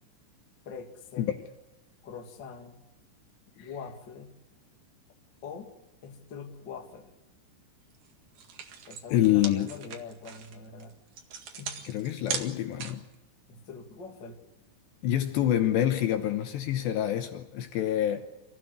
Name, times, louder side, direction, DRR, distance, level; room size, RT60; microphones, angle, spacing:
voice 1, 0.6-1.3 2.0-2.9 3.6-4.3 5.4-5.8 6.0-7.1 8.9-11.0 11.6-12.0 13.5-14.4, left 5 dB, 35° left, 1.8 m, -43 dB
sound 1, 7.9-8.1 8.3-13.1, right 7 dB, 55° right, 2.7 m, -38 dB
voice 2, 9.1-9.7 11.8-13.0 15.0-18.3, left 12 dB, 75° left, 2.9 m, -27 dB
27.0 x 16.0 x 9.5 m
omnidirectional pair, 5.7 m